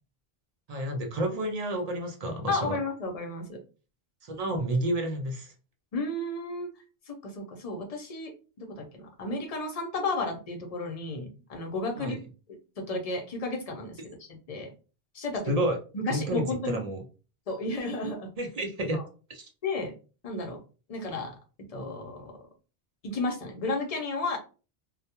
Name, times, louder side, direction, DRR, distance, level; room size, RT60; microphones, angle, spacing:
voice 1, 0.7-2.8 4.2-5.5 12.0-12.2 15.5-15.8 16.1-17.0 18.4-19.0 19.3-19.5, right 1 dB, 50° right, 2 dB, 0.4 m, -30 dB
voice 2, 2.5-3.6 5.9-6.7 7.1-8.3 8.6-12.2 12.9-14.0 14.5-14.7 15.1-15.5 15.9-16.8 17.5-18.3 18.9-19.0 19.6-19.9 20.2-20.6 20.9-21.3 21.7-22.4 23.0-24.4, left 2 dB, 45° left, 2 dB, 0.6 m, -32 dB
2.2 x 2.1 x 2.8 m, 0.34 s
omnidirectional pair, 1.1 m